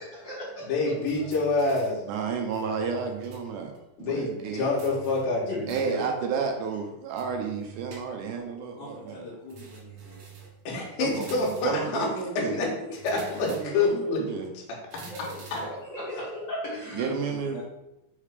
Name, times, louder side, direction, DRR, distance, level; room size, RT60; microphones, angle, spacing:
voice 1, 0.1-0.7 5.5-5.6 12.0-12.1 12.4-12.5 13.1-13.2 15.0-15.3 15.6-17.1, left 1 dB, 40° left, -7 dB, 1.8 m, -36 dB
voice 2, 0.7-2.0 4.0-6.0 10.6-12.1 12.5-12.7 13.0-13.5 13.7-14.2, left 3 dB, 80° left, -3 dB, 3.2 m, -27 dB
sound 1, 1.1-2.1 2.5-3.5 3.7-3.8 4.8-6.1 7.2-8.4 9.5-10.6 11.1-11.9 12.9-14.0 14.9-15.8, right 7 dB, 60° right, 2.0 m, -47 dB
voice 3, 2.1-3.7 4.0-4.7 5.7-9.2 11.0-11.3 11.6-12.6 13.5-14.5 16.9-17.6, right 5 dB, 75° right, 3 dB, 1.9 m, -31 dB
voice 4, 8.8-10.3 15.1-15.7 16.8-17.6, left 2 dB, 60° left, -9 dB, 2.9 m, -44 dB
6.4 x 3.4 x 5.0 m, 0.89 s
omnidirectional pair, 4.2 m